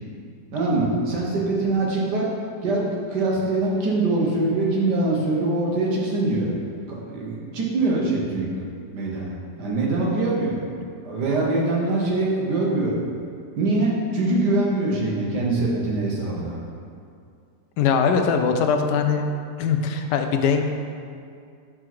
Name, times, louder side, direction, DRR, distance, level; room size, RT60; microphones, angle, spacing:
voice 1, 0.5-2.3 2.6-6.5 6.9-8.5 8.9-10.6 11.0-13.0 13.6-16.6, right 2 dB, 80° right, -3 dB, 1.7 m, -23 dB
voice 2, 17.8-19.2 19.6-20.6, left 6 dB, 90° left, 5 dB, 1.2 m, -21 dB
4.7 x 4.7 x 6.0 m, 2.3 s
omnidirectional pair, 1.8 m